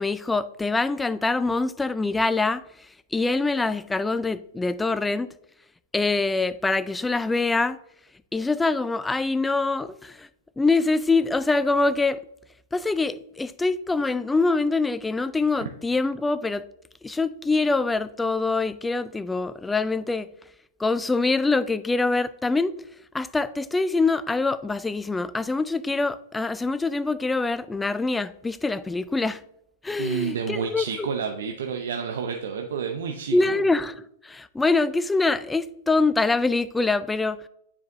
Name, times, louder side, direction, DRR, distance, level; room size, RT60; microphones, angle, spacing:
voice 1, 0.0-2.6 3.1-5.3 5.9-7.8 8.3-10.3 10.6-12.2 12.7-16.6 17.0-20.3 20.8-22.7 23.1-29.4 29.8-31.1 33.3-37.4, left 3 dB, 10° left, 0.4 m, -24 dB
voice 2, 30.0-33.6, right 6 dB, 75° right, 0.7 m, -30 dB
9.6 x 4.8 x 2.7 m
hypercardioid pair, 110°, 0 cm